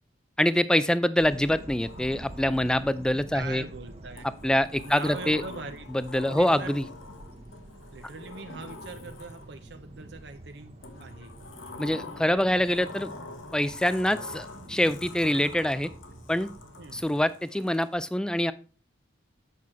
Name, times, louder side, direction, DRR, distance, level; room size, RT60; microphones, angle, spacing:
voice 1, 0.4-3.6 4.2-5.4 5.9-6.8 11.8-13.1 13.5-15.9 16.3-16.5 16.9-18.5, left 1 dB, 5° left, 15 dB, 0.3 m, -25 dB
sound 1, 1.2-17.2, right 1 dB, 30° right, 0.9 m, -47 dB
Sliding door, 1.8-3.2 4.2-9.7 10.8-17.9, left 3 dB, 85° left, 1.4 m, -45 dB
voice 2, 3.3-4.3 4.8-5.8 6.3-6.7 7.9-11.3 16.8-17.0, right 4 dB, 60° right, 7 dB, 0.7 m, -41 dB
8.3 x 6.1 x 4.3 m, 0.37 s
head